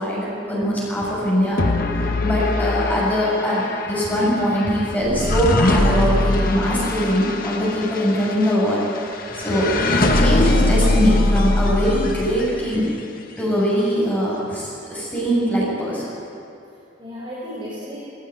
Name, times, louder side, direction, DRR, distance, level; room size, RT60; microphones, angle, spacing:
voice 1, 0.0-1.6 2.2-12.9 13.4-16.1, equal, 10° left, -6 dB, 7.2 m, -22 dB
sound 1, 1.6-12.9, left 2 dB, 50° left, 1.6 m, -22 dB
voice 2, 16.7-18.0, left 1 dB, 30° right, -7 dB, 5.2 m, -36 dB
20.0 x 17.5 x 9.5 m, 2.6 s
head